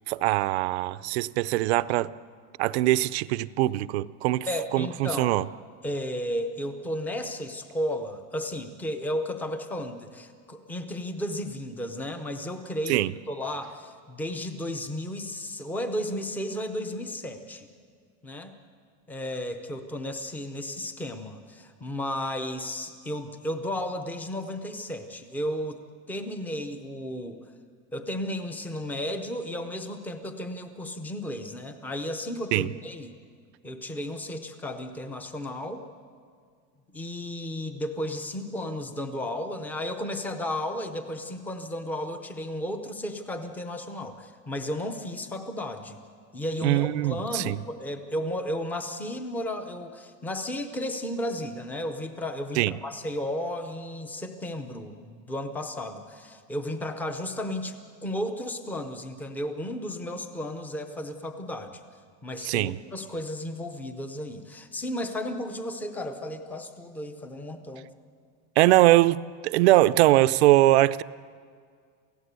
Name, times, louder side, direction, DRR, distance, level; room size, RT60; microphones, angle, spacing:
voice 1, 0.1-2.1 2.6-4.5 4.7-5.4 12.9-13.1 32.5-32.7 46.6-47.6 52.6-52.7 62.4-62.8 68.6-71.0, right 16 dB, 55° right, 17 dB, 0.5 m, -22 dB
voice 2, 4.5-5.3 5.8-17.7 18.2-18.6 19.1-25.8 26.1-27.4 27.9-33.1 33.6-35.9 36.9-46.0 46.3-61.8 62.2-67.9, left 1 dB, 5° left, 7 dB, 0.5 m, -33 dB
28.5 x 16.0 x 8.1 m, 2.1 s
supercardioid pair, 180°, 41 cm